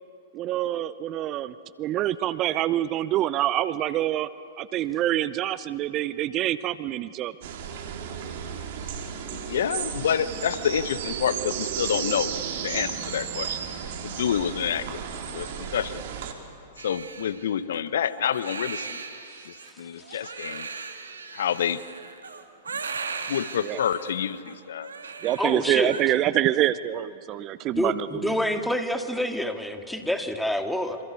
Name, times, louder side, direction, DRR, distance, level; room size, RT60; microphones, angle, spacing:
voice 1, 0.3-4.3 4.6-7.3 23.6-23.8 25.2-28.3, right 13 dB, 35° right, 16 dB, 0.7 m, -26 dB
sound 1, 7.4-16.3, right 8 dB, 55° right, 3.4 m, -34 dB
voice 2, 9.3-12.3 12.6-13.7 14.0-15.0 15.3-16.0 16.8-19.0 19.5-20.7 21.3-21.8 23.3-24.9, left 8 dB, 70° left, 14 dB, 1.0 m, -28 dB
Crying sobbing, 16.8-26.0, right 5 dB, 80° right, 2.5 m, -38 dB
voice 3, 25.4-25.9 27.8-31.0, left 1 dB, ahead, 6 dB, 2.2 m, -27 dB
26.5 x 26.0 x 8.3 m, 2.5 s
hypercardioid pair, 110°, 0 cm